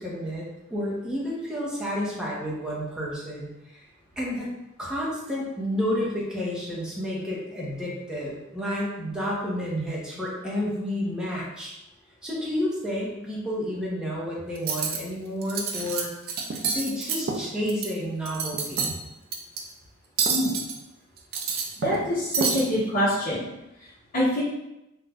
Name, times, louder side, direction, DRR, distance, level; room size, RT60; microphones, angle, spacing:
voice 1, 0.0-3.8 4.2-4.5 4.8-11.7 12.2-16.1 16.5-18.9, equal, 5° right, -6 dB, 0.7 m, -30 dB
Cutlery silverware, 14.6-15.0 15.4-16.0 16.3-17.9 18.2-18.9 19.3-19.6 20.2-20.7 21.2-22.1 22.3-22.6, right 5 dB, 45° right, 0.4 m, -27 dB
voice 2, 21.8-23.5 24.1-24.4, equal, 40° left, -13 dB, 0.9 m, -25 dB
2.5 x 2.1 x 3.4 m, 0.90 s
head